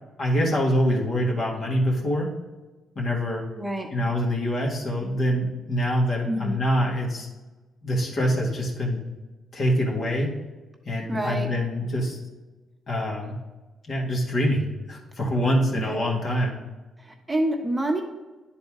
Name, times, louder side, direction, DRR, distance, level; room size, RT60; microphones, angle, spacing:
voice 1, 0.2-2.3 3.0-3.4 3.9-7.3 7.8-9.0 9.5-10.3 10.9-12.2 12.9-13.4 13.9-16.6, equal, 55° left, -2 dB, 2.0 m, -25 dB
voice 2, 3.6-3.9 6.2-6.6 11.1-11.5 15.7-16.1 17.0-18.0, right 1 dB, 20° right, 2 dB, 1.1 m, -27 dB
9.8 x 4.1 x 3.7 m, 1.2 s
supercardioid pair, 65°, 0 cm